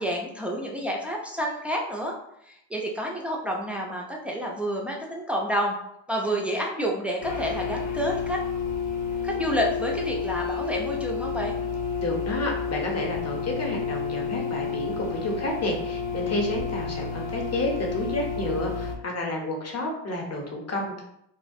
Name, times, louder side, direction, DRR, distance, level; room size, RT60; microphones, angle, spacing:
voice 1, 0.0-2.1 2.5-5.8 6.1-8.4 9.2-11.5, equal, 5° right, -2 dB, 0.3 m, -29 dB
sound 1, 7.2-18.9, left 6 dB, 70° left, 0.6 m, -30 dB
voice 2, 12.0-21.0, left 1 dB, 35° left, 0 dB, 0.7 m, -30 dB
2.3 x 2.1 x 2.6 m, 0.77 s
cardioid pair, 80°, 45 cm